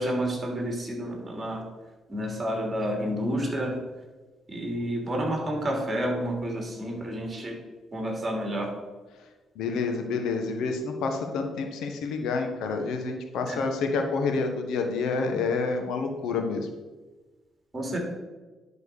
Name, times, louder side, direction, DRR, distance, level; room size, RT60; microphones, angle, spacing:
voice 1, 0.0-1.6 2.1-3.8 4.5-7.6 7.9-8.7 13.5-13.6 17.7-18.0, equal, 25° right, 1 dB, 3.1 m, -30 dB
voice 2, 9.5-16.7, left 4 dB, 85° left, 5 dB, 1.3 m, -28 dB
11.0 x 4.5 x 6.7 m, 1.2 s
cardioid pair, 90°, 0 cm